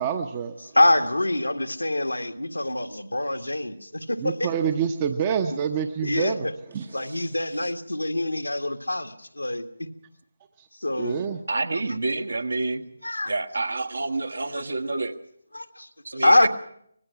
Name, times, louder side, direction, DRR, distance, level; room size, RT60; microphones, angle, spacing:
voice 1, 0.0-0.6 4.2-6.9 10.6-10.7 11.0-11.4, right 7 dB, 25° right, 7 dB, 0.9 m, -27 dB
voice 2, 0.7-4.5 6.0-6.5 6.9-9.9 10.8-11.2 13.0-13.3 15.5-16.5, left 1 dB, 85° left, 6 dB, 1.8 m, -25 dB
voice 3, 11.5-12.9 13.3-15.1 16.0-16.5, right 3 dB, 65° right, 9 dB, 1.7 m, -28 dB
25.0 x 19.5 x 5.9 m, 0.70 s
figure-of-eight pair, 155°, 0 cm